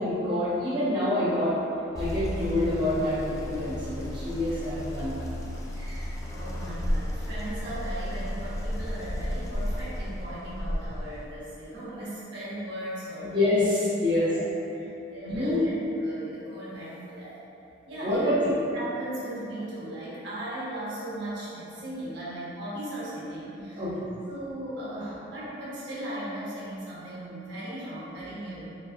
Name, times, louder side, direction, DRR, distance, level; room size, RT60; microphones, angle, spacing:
voice 1, 0.0-1.5 1.9-5.2 13.3-14.4 15.2-15.6 18.0-18.3 23.8-24.1, left 1 dB, 25° right, -12 dB, 0.8 m, -26 dB
sound 1, 1.9-11.2, equal, 15° left, 0.3 m, -33 dB
voice 2, 5.7-13.3 14.0-14.4 14.7-15.7 16.0-17.3 17.9-18.4 18.7-23.8 24.2-28.7, right 1 dB, 65° right, -9 dB, 1.2 m, -37 dB
3.9 x 3.8 x 2.5 m, 2.8 s
head